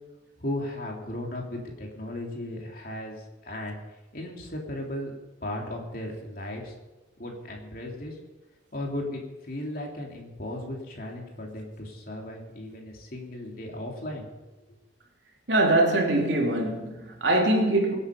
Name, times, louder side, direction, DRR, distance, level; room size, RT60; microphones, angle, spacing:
voice 1, 0.4-3.8 4.1-5.1 5.4-6.7 7.2-8.2 8.7-14.3, left 1 dB, 50° left, 3.1 m, -36 dB
voice 2, 15.5-18.0, right 1 dB, 70° right, 3.0 m, -23 dB
24.0 x 8.5 x 5.3 m
head